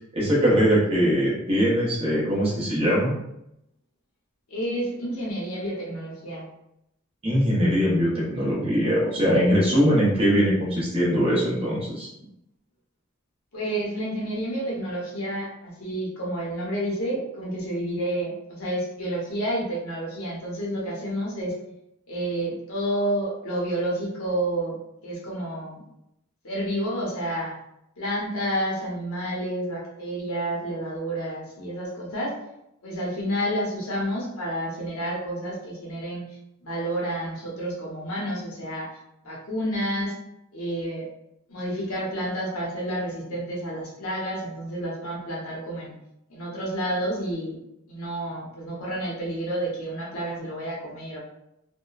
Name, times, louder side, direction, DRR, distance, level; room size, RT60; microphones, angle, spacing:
voice 1, 0.1-3.1 7.2-12.1, equal, 25° right, -6 dB, 0.9 m, -21 dB
voice 2, 4.5-6.5 13.5-21.6 22.1-24.8 25.0-25.8 26.4-27.5 28.0-32.3 32.8-36.2 36.6-38.9 39.2-40.1 40.5-41.1 41.5-45.9 46.3-47.6 47.9-51.2, right 1 dB, 75° left, -4 dB, 0.9 m, -30 dB
2.8 x 2.2 x 2.3 m, 0.81 s
head